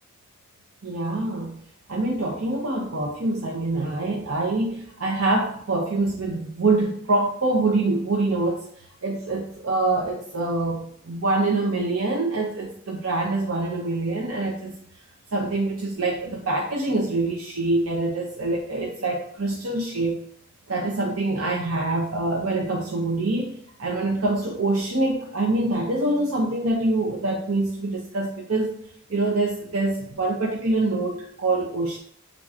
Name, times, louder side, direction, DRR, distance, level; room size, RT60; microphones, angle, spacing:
voice 1, 0.8-1.5 1.9-8.6 9.0-10.8 11.0-14.7 15.3-20.2 20.7-23.5 23.8-28.7 29.1-32.0, right 2 dB, 90° right, -1 dB, 0.7 m, -25 dB
5.7 x 3.7 x 2.4 m, 0.66 s
head